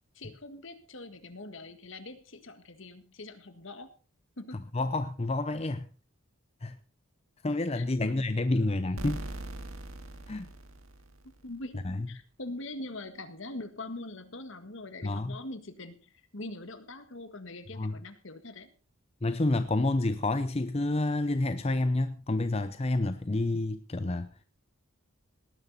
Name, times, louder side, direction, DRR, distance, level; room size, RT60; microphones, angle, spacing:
voice 1, 0.2-3.9 4.4-4.7 7.7-8.3 8.6-8.8 11.2-18.7, left 2 dB, 65° left, 1.7 m, -43 dB
voice 2, 4.7-5.9 6.6-6.8 7.4-9.3 10.3-10.5 11.8-12.1 15.0-15.4 17.7-18.0 19.2-24.3, left 2 dB, 30° left, 0.6 m, -29 dB
sound 1, 9.0-11.7, right 1 dB, 75° right, 2.2 m, -41 dB
18.5 x 10.5 x 4.1 m
head